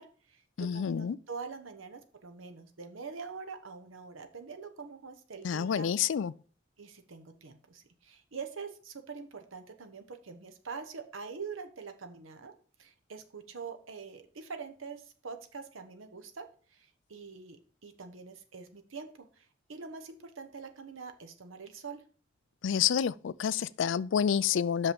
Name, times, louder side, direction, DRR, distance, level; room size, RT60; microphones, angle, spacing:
voice 1, 0.0-5.9 6.8-12.5 12.8-17.6 17.8-22.0, right 5 dB, 90° right, 0.9 m, -44 dB
voice 2, 0.6-1.2 5.4-6.3 22.6-24.9, left 8 dB, 70° left, 0.3 m, -28 dB
6.1 x 5.5 x 5.2 m
head